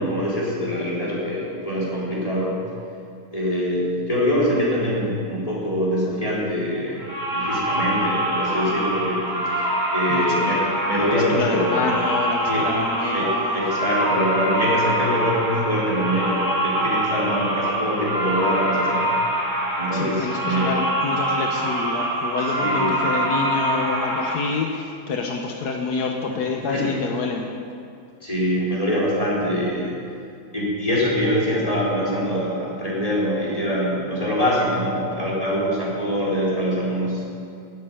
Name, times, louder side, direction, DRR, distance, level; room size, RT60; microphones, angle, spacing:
voice 1, 0.0-2.6 3.3-9.5 9.9-11.8 12.5-12.7 13.1-19.0 19.8-20.7 22.6-23.0 26.7-26.9 28.2-29.9 30.5-37.2, equal, 20° left, -7 dB, 4.2 m, -24 dB
sound 1, 7.0-24.4, right 1 dB, 40° right, 2.9 m, -24 dB
voice 2, 10.1-10.5 11.0-13.6 19.9-27.5, left 4 dB, 80° left, 2 dB, 1.6 m, -27 dB
13.0 x 8.7 x 9.6 m, 2.5 s
omnidirectional pair, 1.7 m